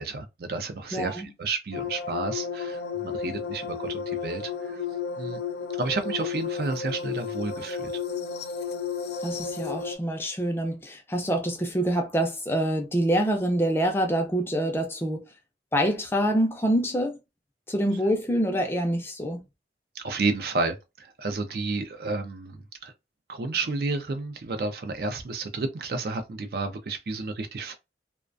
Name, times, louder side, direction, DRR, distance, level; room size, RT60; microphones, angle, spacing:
voice 1, 0.0-4.8 5.2-5.4 5.8-7.9 20.0-22.9 23.3-27.8, right 3 dB, 60° right, 0.4 m, -31 dB
voice 2, 0.9-1.3 9.2-15.2 15.7-17.2 17.7-19.4, right 1 dB, 15° left, 0.4 m, -26 dB
sound 1, 1.7-10.0, left 6 dB, 75° left, 0.4 m, -33 dB
2.3 x 2.2 x 2.4 m
head